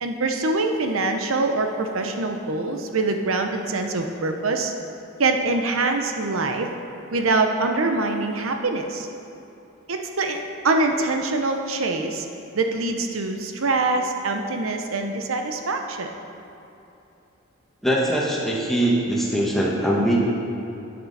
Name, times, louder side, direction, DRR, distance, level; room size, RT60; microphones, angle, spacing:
voice 1, 0.0-4.7 5.2-6.7 7.1-9.1 9.9-12.3 12.5-16.1, right 3 dB, 85° right, 4 dB, 0.8 m, -24 dB
voice 2, 17.8-20.2, right 1 dB, ahead, -4 dB, 1.4 m, -22 dB
9.6 x 9.1 x 4.1 m, 2.9 s
head